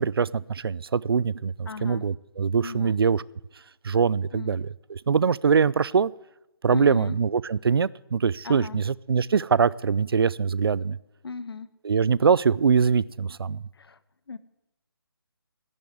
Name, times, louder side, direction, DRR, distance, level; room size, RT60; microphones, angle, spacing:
voice 1, 0.0-3.2 3.8-6.1 6.6-11.0 11.8-13.6, right 6 dB, 65° right, 0.5 m, -23 dB
voice 2, 1.7-2.0 2.6-3.0 4.3-4.6 6.7-7.2 8.4-8.8 11.2-11.7 13.7-14.0 14.3-14.4, left 4 dB, 70° left, 1.1 m, -36 dB
11.5 x 10.5 x 9.3 m
hypercardioid pair, 170°, 13 cm